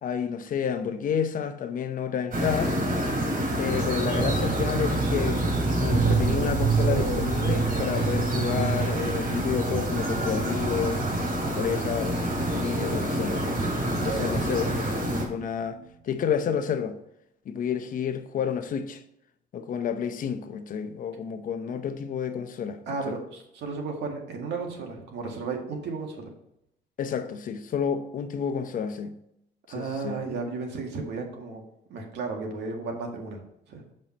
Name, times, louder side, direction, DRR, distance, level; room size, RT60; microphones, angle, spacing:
voice 1, 0.0-2.8 3.6-5.4 5.8-11.0 11.5-13.4 13.9-15.8 16.0-17.0 17.5-19.0 19.5-22.8 23.1-23.2 27.0-29.1 29.7-30.2, left 7 dB, 50° left, 0.8 m, -30 dB
sound 1, 2.3-15.2, right 1 dB, 55° right, 3.1 m, -27 dB
sound 2, 5.9-15.5 15.8-15.9 16.2-16.3, right 7 dB, 40° right, 0.7 m, -31 dB
voice 2, 14.1-14.4 22.9-26.3 29.7-31.6 31.9-33.4 33.7-33.8, right 4 dB, 75° right, 1.9 m, -34 dB
7.5 x 5.4 x 4.3 m
cardioid pair, 120°, 18 cm